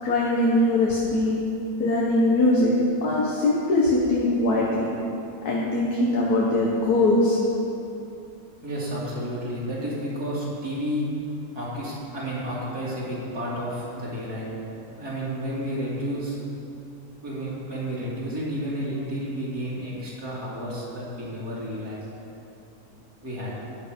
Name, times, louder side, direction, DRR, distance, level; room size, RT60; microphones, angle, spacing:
voice 1, 0.0-1.4 1.8-2.7 3.0-4.9 5.5-7.4, left 2 dB, 80° left, -4 dB, 1.9 m, -21 dB
voice 2, 8.6-11.0 11.6-14.5 15.0-16.4 17.2-22.1 23.2-23.5, equal, 80° right, -8 dB, 4.0 m, -31 dB
14.0 x 9.3 x 5.3 m, 2.8 s
omnidirectional pair, 1.6 m